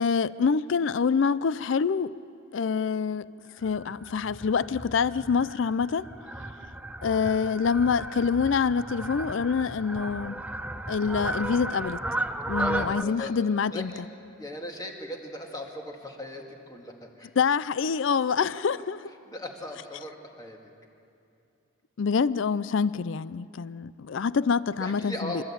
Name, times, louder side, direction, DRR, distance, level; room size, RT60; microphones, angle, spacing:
voice 1, 0.0-2.1 2.5-3.3 3.6-6.1 7.0-10.4 10.9-12.0 12.5-13.9 17.4-19.0 22.0-25.4, left 5 dB, 60° left, 0.4 m, -26 dB
Fowl, 3.6-13.0, right 1 dB, 5° right, 0.4 m, -35 dB
voice 2, 12.6-13.3 13.7-14.0 14.4-17.3 18.7-18.8 19.3-20.6 24.8-25.4, left 1 dB, 20° left, 2.0 m, -38 dB
26.5 x 13.5 x 8.6 m
head